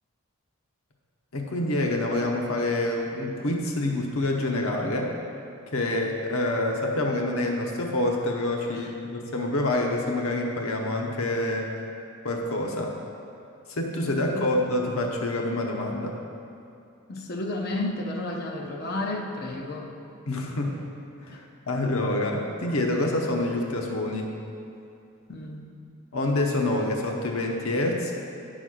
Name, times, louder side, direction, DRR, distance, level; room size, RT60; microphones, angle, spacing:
voice 1, 1.3-5.1 5.7-11.7 12.2-12.9 13.7-16.1 20.3-20.8 21.2-24.3 26.1-28.1, left 2 dB, 75° left, 1 dB, 0.8 m, -27 dB
voice 2, 17.1-19.9 21.3-21.4 25.3-25.7, left 2 dB, 45° left, 0 dB, 0.7 m, -32 dB
10.0 x 4.1 x 6.2 m, 2.6 s
head